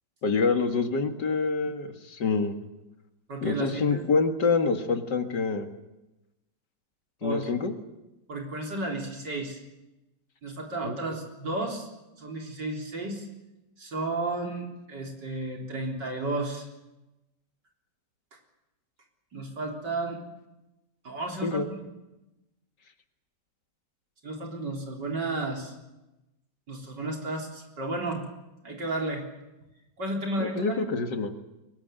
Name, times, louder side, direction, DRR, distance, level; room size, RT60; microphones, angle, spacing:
voice 1, 0.2-2.6 3.4-5.7 7.2-7.7 10.8-11.0 21.4-21.7 30.4-31.3, left 4 dB, 70° left, 6 dB, 2.5 m, -26 dB
voice 2, 3.3-4.1 7.2-7.4 8.3-9.6 10.4-11.9 12.2-13.3 13.8-16.7 19.3-20.2 21.0-21.8 24.2-25.7 26.7-28.2 28.6-29.2 30.0-30.8, right 2 dB, 75° right, 1 dB, 4.5 m, -33 dB
23.0 x 19.5 x 9.1 m, 0.99 s
omnidirectional pair, 1.9 m